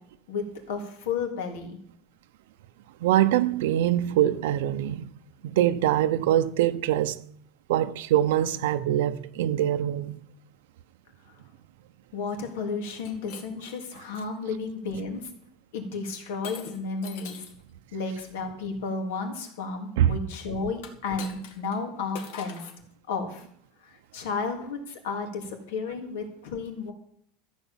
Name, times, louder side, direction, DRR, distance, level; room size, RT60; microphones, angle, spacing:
voice 1, 0.3-1.8 12.1-15.3 15.7-17.4 17.9-22.7 23.1-23.4 23.8-26.9, left 4 dB, 80° left, 3.4 m, -33 dB
voice 2, 3.0-5.1 5.4-7.2 7.7-10.2 20.0-20.2, right 12 dB, 80° right, 0.7 m, -23 dB
Shatter, 12.9-14.3 14.9-15.3 16.4-17.6 20.8-21.8 22.1-22.8, left 7 dB, 65° left, 2.2 m, -43 dB
14.5 x 8.2 x 7.3 m
supercardioid pair, 175°, 0 cm